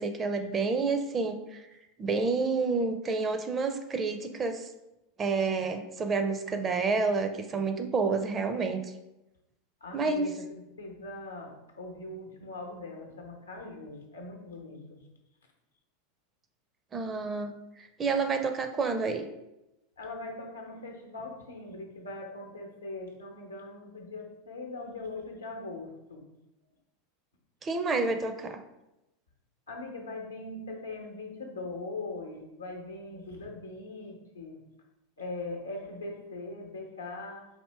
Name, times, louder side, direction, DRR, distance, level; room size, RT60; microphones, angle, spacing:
voice 1, 0.0-1.7 2.0-4.7 5.2-8.9 9.9-10.3 16.9-19.2 27.6-28.6, right 4 dB, 25° right, 7 dB, 0.5 m, -29 dB
voice 2, 9.8-15.0 20.0-26.3 29.7-34.6 35.2-37.5, left 2 dB, 85° left, 1 dB, 0.8 m, -41 dB
4.3 x 2.7 x 3.3 m, 0.92 s
figure-of-eight pair, 85°, 0 cm